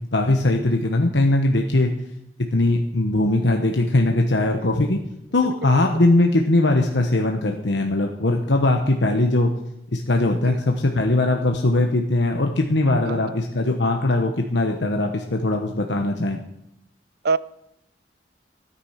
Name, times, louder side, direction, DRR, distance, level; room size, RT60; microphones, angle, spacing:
voice 1, 0.1-1.9 2.5-5.0 5.3-9.5 9.9-16.4, left 2 dB, 85° left, 3 dB, 1.2 m, -20 dB
voice 2, 4.6-4.9 5.6-5.8 10.5-10.6 13.1-13.2 17.2-17.4, right 4 dB, 60° right, 18 dB, 0.5 m, -26 dB
16.0 x 9.7 x 5.8 m, 0.81 s
head